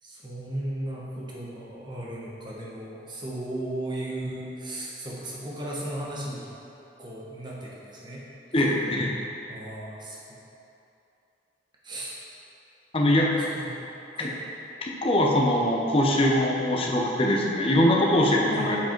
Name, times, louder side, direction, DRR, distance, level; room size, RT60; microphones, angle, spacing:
voice 1, 0.0-6.5 7.0-8.2 9.5-10.4 11.8-12.2 13.1-13.8 14.1-14.3 18.5-18.8, right 1 dB, 25° right, -5 dB, 1.3 m, -36 dB
voice 2, 8.5-9.2 12.9-13.3 14.8-18.8, left 1 dB, 30° left, -2 dB, 0.8 m, -22 dB
7.4 x 5.0 x 4.6 m, 2.9 s
head